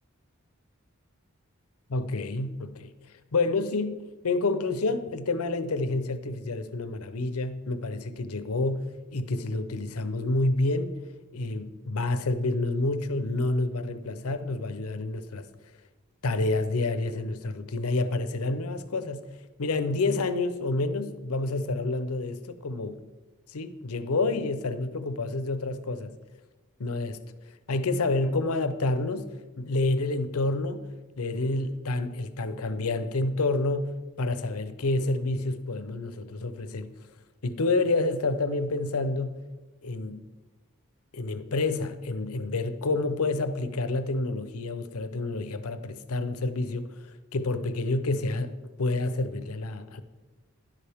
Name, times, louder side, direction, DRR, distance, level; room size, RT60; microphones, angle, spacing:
voice 1, 1.9-2.9 3.3-4.0 4.2-11.0 11.3-15.4 16.2-19.3 19.6-23.0 23.5-26.2 26.8-27.2 27.7-29.3 29.6-30.9 31.2-36.9 37.4-39.3 39.8-40.2 41.1-50.0, left 2 dB, 90° left, 0.7 m, -28 dB
11.5 x 11.0 x 3.5 m
head